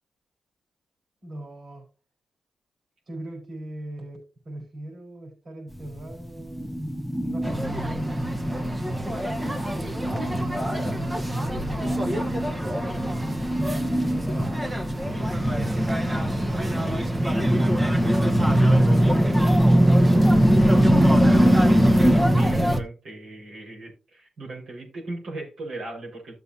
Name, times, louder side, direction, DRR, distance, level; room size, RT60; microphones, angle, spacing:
voice 1, 1.2-1.8 3.1-4.2 4.4-6.9 7.2-8.1 9.7-15.9 16.4-18.3 18.7-20.7, right 1 dB, 55° right, 1 dB, 4.9 m, -40 dB
sound 1, 5.7-22.8, equal, 5° left, 0.6 m, -30 dB
sound 2, 7.4-22.8, equal, 20° right, 1.1 m, -22 dB
voice 2, 21.4-26.3, right 2 dB, 80° right, -3 dB, 4.9 m, -38 dB
14.0 x 6.9 x 2.8 m, 0.32 s
cardioid pair, 80°, 0 cm